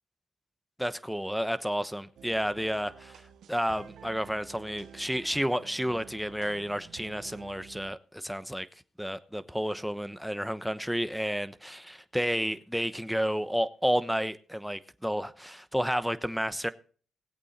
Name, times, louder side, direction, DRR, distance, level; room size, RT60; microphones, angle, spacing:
voice 1, 0.8-3.2 3.5-8.7 9.0-16.7, equal, ahead, 1.0 m, -31 dB
sound 1, 2.2-7.9, right 8 dB, 85° right, 1.4 m, -50 dB
19.0 x 8.4 x 4.1 m
cardioid pair, 80°, 0 cm